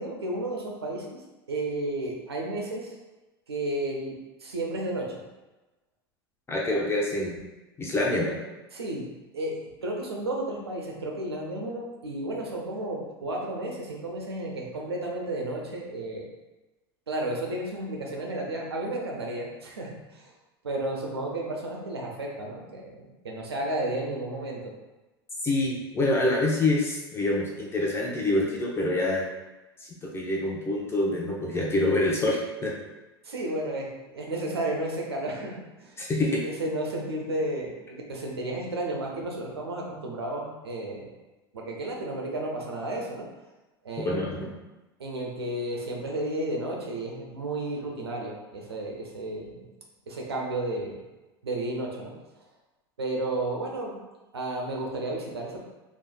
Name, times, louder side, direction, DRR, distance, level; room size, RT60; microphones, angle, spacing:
voice 1, 0.0-2.9 3.5-4.1 4.4-5.2 6.7-6.8 8.7-9.1 9.3-16.3 17.1-20.3 20.6-24.7 33.2-36.0 36.4-41.1 41.5-43.3 43.8-44.2 45.0-49.7 50.1-51.0 51.4-52.1 53.0-54.0 54.3-55.6, right 1 dB, 75° right, -1 dB, 1.0 m, -32 dB
voice 2, 6.5-7.4 7.8-8.4 25.4-29.3 29.8-32.7 36.0-36.4 44.0-44.5, left 2 dB, 20° left, -3 dB, 0.8 m, -26 dB
5.2 x 3.5 x 2.3 m, 1.1 s
figure-of-eight pair, 80°, 13 cm